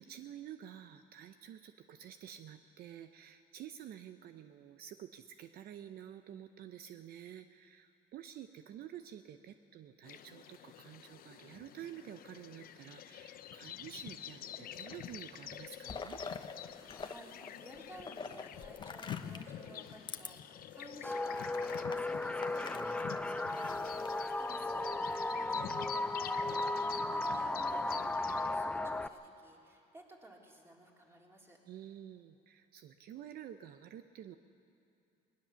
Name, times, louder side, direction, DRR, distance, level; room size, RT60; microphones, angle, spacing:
voice 1, 0.0-16.2 31.7-34.4, right 10 dB, 65° right, 9 dB, 0.7 m, -50 dB
sound 1, 10.0-28.6, left 10 dB, 60° left, 0.8 m, -47 dB
sound 2, 14.5-15.2 15.5-17.1 17.4-19.5 20.0-20.3 20.8-20.9 21.3-24.1 24.9-25.5, left 5 dB, 25° left, 1.0 m, -46 dB
voice 2, 16.8-23.5 23.9-31.6, right 1 dB, 15° right, -2 dB, 3.5 m, -56 dB
sound 3, 21.0-29.1, left 2 dB, 5° left, 0.5 m, -35 dB
20.0 x 19.0 x 7.0 m, 2.6 s
cardioid pair, 110°, 17 cm